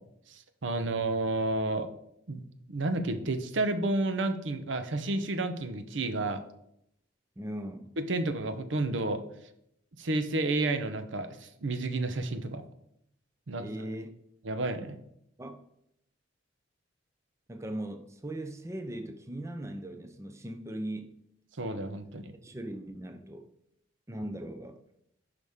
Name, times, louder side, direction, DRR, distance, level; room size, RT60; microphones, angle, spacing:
voice 1, 0.3-1.9 2.3-2.4 2.7-6.4 8.0-9.2 10.0-12.6 13.5-13.6 14.4-15.0 21.6-22.3, right 2 dB, 80° right, 0.8 m, -31 dB
voice 2, 7.4-7.9 13.6-14.1 15.4-15.6 17.5-21.1 22.3-23.5 24.1-24.8, right 1 dB, 15° right, 0.6 m, -39 dB
10.5 x 5.1 x 3.6 m
head